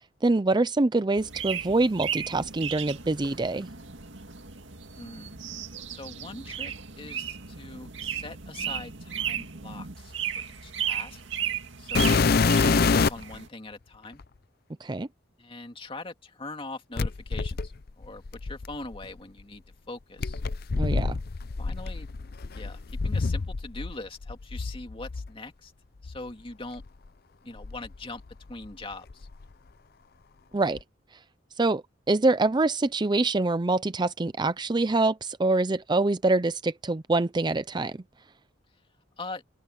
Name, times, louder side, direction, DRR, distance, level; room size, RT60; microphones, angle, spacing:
voice 1, 0.2-3.7 14.8-15.1 20.8-21.2 30.5-30.8 31.6-31.8 32.1-38.0, right 2 dB, 25° right, 0.5 m, -25 dB
sound 1, 1.2-13.5, right 8 dB, 85° right, 2.1 m, -35 dB
voice 2, 4.9-5.4 5.9-10.1 10.4-11.2 11.8-12.2 12.5-14.2 15.4-20.4 21.6-22.1 22.5-25.7 26.0-26.8 27.4-28.2 28.5-29.3 39.2-39.4, left 2 dB, 30° left, 2.4 m, -42 dB
sound 2, 11.9-13.3 14.2-14.3 17.0-19.0 20.2-23.9 24.2-25.3 26.0-26.2 26.8-26.9 27.6-28.7 28.9-29.4 30.8-30.9, left 4 dB, 55° left, 0.6 m, -26 dB
open air
head